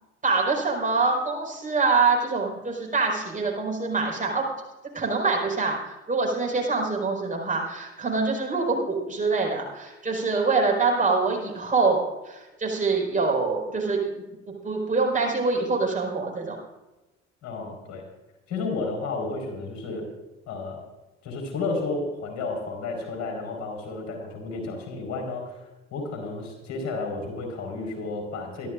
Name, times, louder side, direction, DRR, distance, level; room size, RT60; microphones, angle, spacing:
voice 1, 0.2-4.5 4.9-14.0 14.5-16.6, right 4 dB, 25° right, -1 dB, 5.1 m, -25 dB
voice 2, 17.4-18.0 18.5-20.0 20.5-20.8 21.2-25.6 25.9-28.7, left 3 dB, 55° left, 2 dB, 4.9 m, -32 dB
25.0 x 12.5 x 2.6 m, 1.1 s
hypercardioid pair, 55°, 33 cm